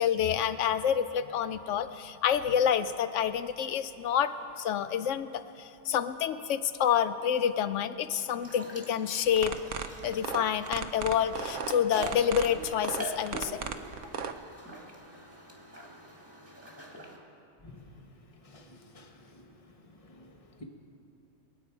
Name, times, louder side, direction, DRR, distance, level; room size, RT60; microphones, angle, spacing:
voice 1, 0.0-9.7 10.0-13.6, left 9 dB, 80° left, 12 dB, 1.0 m, -28 dB
sound 1, 8.4-17.2, equal, 10° right, 1.6 m, -43 dB
sound 2, 9.3-14.3, right 7 dB, 80° right, 1.1 m, -35 dB
voice 2, 18.4-19.4 20.2-20.3, left 2 dB, 30° left, 2 dB, 1.3 m, -52 dB
24.0 x 8.8 x 4.6 m, 2.7 s
omnidirectional pair, 1.3 m